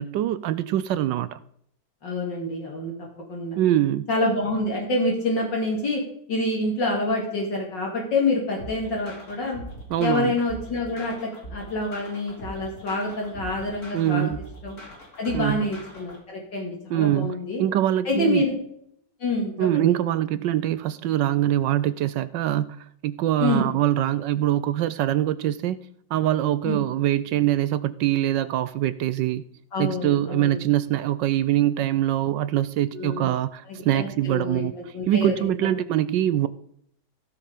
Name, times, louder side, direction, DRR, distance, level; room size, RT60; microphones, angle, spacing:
voice 1, 0.0-1.4 3.6-4.1 9.9-10.4 13.9-14.4 15.3-15.7 16.9-18.5 19.6-25.8 26.1-29.4 29.8-34.7 35.1-36.5, right 12 dB, 75° right, 1.2 m, -23 dB
voice 2, 2.0-2.9 3.3-3.6 4.1-6.0 6.3-9.6 10.0-14.3 14.6-14.8 15.2-17.6 18.0-18.6 19.2-19.9 23.4-23.7 26.6-26.8 29.7-30.6 32.9-33.3 33.7-35.7, left 2 dB, 65° left, 3.0 m, -27 dB
sound 1, 8.6-16.2, right 1 dB, 45° left, 4.6 m, -41 dB
16.0 x 7.0 x 5.1 m
omnidirectional pair, 2.1 m